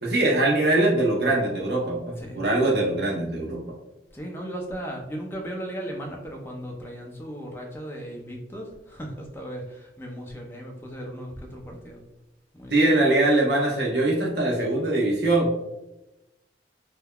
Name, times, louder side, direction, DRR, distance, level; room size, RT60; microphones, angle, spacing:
voice 1, 0.0-3.6 12.7-15.5, right 2 dB, 65° right, -2 dB, 0.8 m, -22 dB
voice 2, 4.1-12.0 12.5-12.7, equal, 15° left, 1 dB, 0.4 m, -36 dB
3.4 x 2.1 x 2.2 m, 0.96 s
head